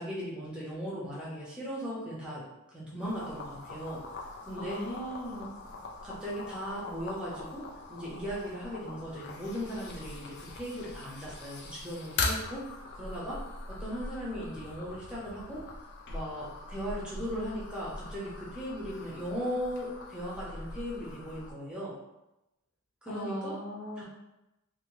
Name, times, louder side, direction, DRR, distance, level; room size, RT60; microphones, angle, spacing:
voice 1, 0.0-2.4 2.7-4.0 4.5-4.8 6.0-7.6 7.9-12.6 12.9-13.4 13.7-15.6 16.1-21.9 23.0-23.6 24.0-24.1, equal, 5° right, -8 dB, 0.7 m, -38 dB
sound 1, 3.0-21.5, left 3 dB, 50° left, 0.4 m, -41 dB
voice 2, 4.5-5.5 23.1-24.0, equal, 90° left, -3 dB, 0.7 m, -38 dB
2.7 x 2.1 x 3.0 m, 0.93 s
head